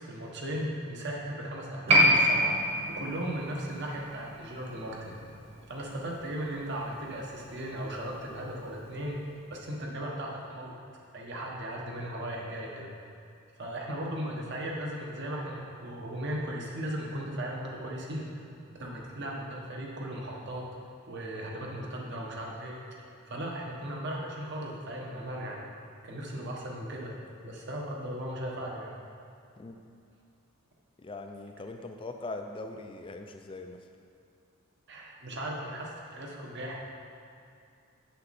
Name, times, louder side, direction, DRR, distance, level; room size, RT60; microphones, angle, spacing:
voice 1, 0.0-2.5 2.9-5.2 5.7-9.2 9.5-10.8 11.1-12.9 13.6-20.6 21.1-25.7 26.0-27.1 27.4-28.9 34.9-36.8, right 1 dB, 55° right, -2 dB, 1.3 m, -37 dB
Piano, 1.9-8.8 9.1-9.2, equal, 30° right, 1.3 m, -28 dB
voice 2, 31.0-33.8, left 2 dB, 25° left, 5 dB, 0.4 m, -41 dB
7.9 x 7.4 x 4.2 m, 2.6 s
head